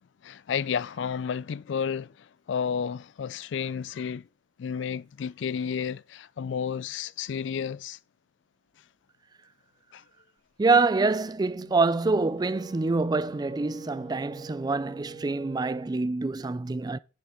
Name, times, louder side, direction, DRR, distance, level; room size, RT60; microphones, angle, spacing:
voice 1, 0.2-4.3 4.6-8.0 9.9-10.0, left 7 dB, 80° left, 0.4 m, -31 dB
voice 2, 10.6-17.0, right 3 dB, 20° right, 0.3 m, -26 dB
Wind instrument woodwind instrument, 11.5-16.0, right 3 dB, 65° right, 4.0 m, -46 dB
9.4 x 6.9 x 3.7 m
head